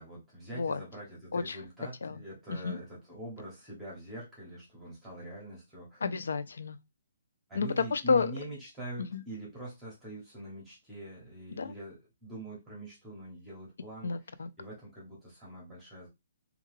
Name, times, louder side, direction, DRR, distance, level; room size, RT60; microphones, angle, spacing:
voice 1, 0.0-6.0 7.5-14.1 14.6-16.1, right 1 dB, 5° right, 0.9 m, -44 dB
voice 2, 6.0-6.8 7.6-8.3 9.0-9.2 11.6-11.7 14.0-14.5, left 4 dB, 85° left, 0.3 m, -30 dB
2.3 x 2.2 x 3.2 m
hypercardioid pair, 165°, 0 cm